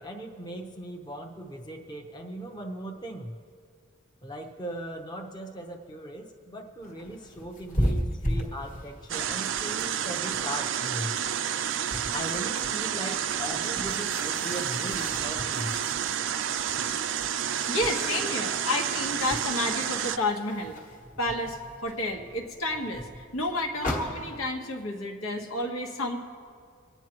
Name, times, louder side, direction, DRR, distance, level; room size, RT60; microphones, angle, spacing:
voice 1, 0.0-3.3 4.2-11.1 12.1-15.7, right 1 dB, 20° left, 1 dB, 0.8 m, -38 dB
sound 1, 6.8-24.5, equal, 35° left, 1.3 m, -37 dB
sound 2, 9.1-20.2, right 9 dB, 60° right, 0.4 m, -30 dB
voice 2, 17.7-20.8 21.2-23.1 23.3-26.2, left 1 dB, 85° left, 1 dB, 1.4 m, -30 dB
25.0 x 9.1 x 3.0 m, 2.2 s
head